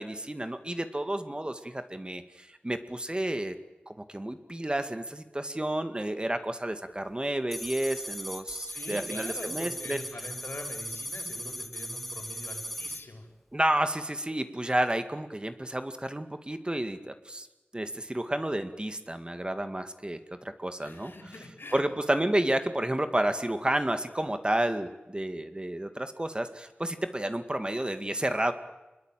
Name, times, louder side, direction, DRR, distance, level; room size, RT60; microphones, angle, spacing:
voice 1, 0.0-3.5 3.9-10.0 13.5-17.5 17.7-21.1 21.7-28.5, right 1 dB, 25° right, 8 dB, 2.1 m, -31 dB
sound 1, 7.5-13.0, equal, 5° left, 1.9 m, -38 dB
voice 2, 8.7-13.3 20.8-21.8 22.1-22.3, left 2 dB, 70° left, 5 dB, 5.5 m, -43 dB
27.0 x 21.5 x 9.2 m, 1.0 s
wide cardioid pair, 45°, 4 cm